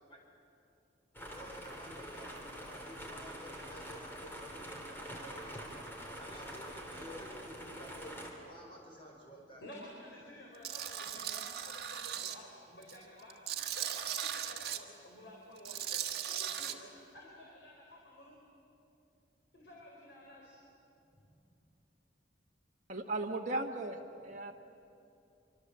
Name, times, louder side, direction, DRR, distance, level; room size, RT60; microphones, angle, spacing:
sound 1, 1.1-8.3, equal, 10° left, 3.2 m, -45 dB
voice 1, 1.3-5.5 6.1-8.1 8.4-9.7, equal, 30° left, -1 dB, 5.4 m, -52 dB
voice 2, 9.6-13.4 13.7-18.4 19.5-20.6, left 1 dB, 90° left, -2 dB, 4.4 m, -53 dB
Tools, 10.6-12.4 12.8-14.8 15.6-16.7, right 10 dB, 60° right, 1.5 m, -38 dB
voice 3, 22.9-24.5, right 2 dB, 40° right, 0 dB, 1.4 m, -37 dB
25.5 x 25.0 x 7.6 m, 2.7 s
head